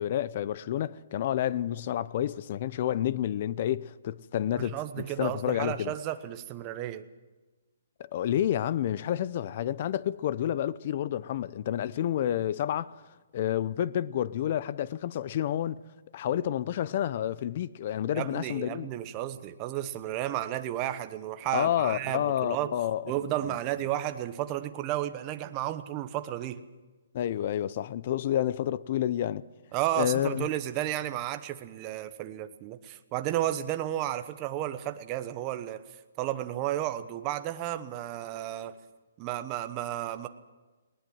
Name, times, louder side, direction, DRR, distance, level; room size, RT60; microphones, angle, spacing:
voice 1, 0.0-5.9 8.0-13.0 13.3-15.8 16.1-18.9 21.5-23.0 23.4-23.6 27.1-29.4 30.0-30.5, left 11 dB, 35° left, 0.6 m, -29 dB
voice 2, 4.6-7.1 18.1-22.7 23.1-26.6 29.7-35.8 36.2-38.7 39.2-40.3, right 13 dB, 20° right, 1.0 m, -32 dB
19.5 x 19.5 x 7.8 m
hypercardioid pair, 170°, 0 cm